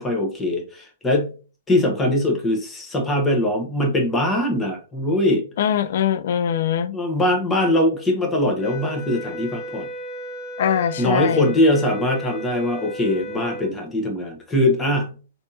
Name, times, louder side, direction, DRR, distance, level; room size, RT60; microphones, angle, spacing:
voice 1, 0.0-1.3 1.7-5.4 6.9-9.9 11.0-15.1, left 1 dB, 15° left, 1.0 m, -21 dB
voice 2, 5.6-7.0 10.6-11.5, left 9 dB, 60° left, 0.3 m, -22 dB
sound 1, 8.6-13.8, equal, 40° left, 0.8 m, -34 dB
3.3 x 2.7 x 2.7 m
hypercardioid pair, 115°, 0 cm